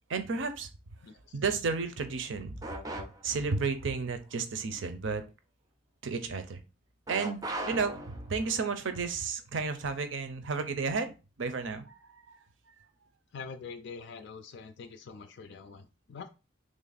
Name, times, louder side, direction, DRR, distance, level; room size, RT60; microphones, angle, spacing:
voice 1, 0.1-0.7 1.3-2.6 3.2-5.2 6.0-6.6 7.1-11.1 11.4-12.4, right 4 dB, 70° right, 0.6 m, -32 dB
sound 1, 2.6-3.5 7.1-8.6, right 1 dB, 20° right, 0.4 m, -39 dB
voice 2, 13.3-16.3, left 5 dB, 60° left, 0.4 m, -44 dB
3.2 x 2.5 x 4.0 m
head